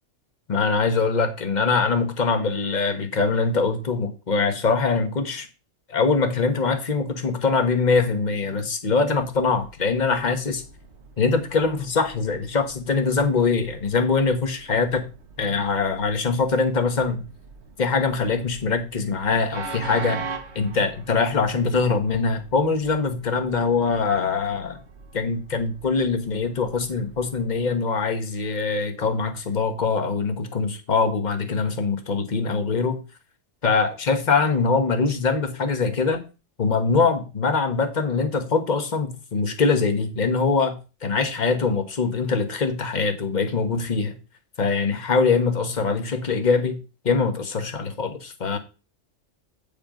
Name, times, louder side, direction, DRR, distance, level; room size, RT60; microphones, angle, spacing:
voice 1, 0.5-5.5 5.9-10.6 11.2-15.0 15.4-17.2 17.8-20.2 20.5-24.8 25.1-33.0 33.6-36.2 36.6-40.7 41.0-44.2 44.6-46.8 47.0-48.6, left 4 dB, 35° left, 1.3 m, -23 dB
Train, 9.1-27.7, right 4 dB, 60° right, 1.4 m, -43 dB
8.7 x 5.6 x 5.1 m
omnidirectional pair, 1.3 m